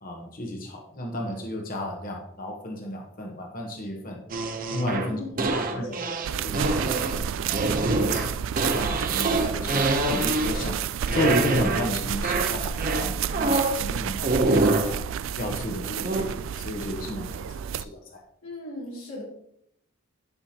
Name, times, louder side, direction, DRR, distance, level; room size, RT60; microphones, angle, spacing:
voice 1, 0.0-4.2 4.7-5.2 5.5-5.9 6.4-7.3 7.6-8.3 8.7-10.8 11.1-15.0 15.4-16.3 16.6-17.5 17.8-18.0, left 1 dB, 40° left, 1 dB, 1.1 m, -32 dB
sound 1, 4.3-10.8 11.1-11.9 12.2-13.8 14.2-14.9 16.0-16.2, right 2 dB, 40° right, 0.7 m, -26 dB
voice 2, 5.0-6.6 18.4-19.2, left 1 dB, 90° left, -5 dB, 2.7 m, -39 dB
sound 2, 6.2-17.8, right 8 dB, 70° right, 0.3 m, -30 dB
10.5 x 5.5 x 2.9 m, 0.74 s
head